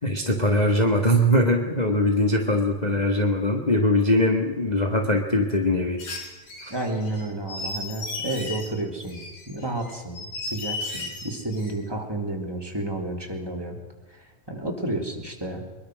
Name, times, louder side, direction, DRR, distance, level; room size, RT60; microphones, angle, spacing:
voice 1, 0.0-6.0, left 1 dB, 20° left, 0 dB, 1.0 m, -21 dB
sound 1, 6.0-8.7 9.0-11.7, left 3 dB, 80° left, 5.8 m, -35 dB
voice 2, 6.7-13.8 14.1-15.6, right 2 dB, 5° right, 0 dB, 3.2 m, -31 dB
24.0 x 22.0 x 6.4 m, 1.2 s
omnidirectional pair, 3.6 m